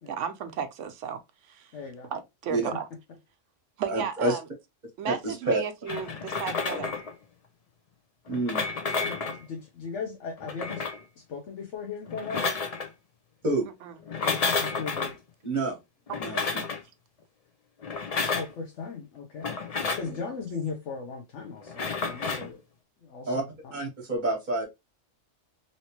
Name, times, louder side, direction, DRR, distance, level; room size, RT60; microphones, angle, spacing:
voice 1, 0.1-1.7 2.1-2.9 3.8-4.4 5.0-7.0 13.8-13.9 16.1-16.2 20.2-20.3, right 7 dB, 75° right, 1.0 m, -34 dB
voice 2, 1.7-2.1 9.0-10.8 11.2-12.5 14.2-15.1 18.3-19.5 19.9-22.6 23.0-23.8, left 5 dB, 70° left, 1.0 m, -37 dB
voice 3, 3.9-4.3 5.0-5.6 6.6-6.8 8.3-8.6 13.4-13.7 15.4-15.8 16.2-16.4 20.0-20.2 23.3-23.4 23.7-24.7, right 2 dB, 40° right, 1.2 m, -28 dB
sound 1, 5.9-7.1 8.3-9.4 10.4-11.0 12.1-12.9 14.0-15.1 16.1-16.8 17.8-18.5 19.4-20.1 21.7-22.5, left 4 dB, 45° left, 0.5 m, -30 dB
3.1 x 2.8 x 2.9 m
omnidirectional pair, 1.3 m